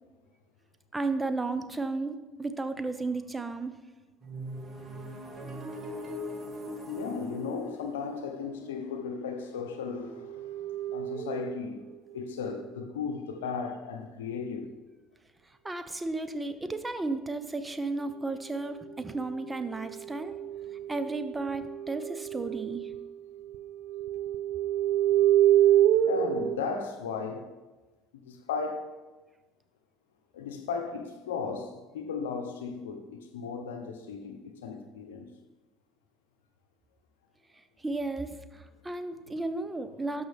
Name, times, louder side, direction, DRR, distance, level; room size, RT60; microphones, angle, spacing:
voice 1, 0.9-3.7 15.6-20.4 20.9-22.9 37.8-40.2, right 3 dB, 15° right, 0.8 m, -33 dB
sound 1, 4.2-10.0, equal, 40° right, 1.8 m, -41 dB
voice 2, 6.9-10.7 10.9-11.9 12.1-14.8 26.0-27.5 28.2-28.9 30.3-35.3, left 5 dB, 85° left, 0.7 m, -36 dB
sound 2, 10.2-11.7 19.5-23.1 23.3-26.6, right 12 dB, 65° right, 0.5 m, -27 dB
12.5 x 5.5 x 3.5 m
hypercardioid pair, 65°, 0 cm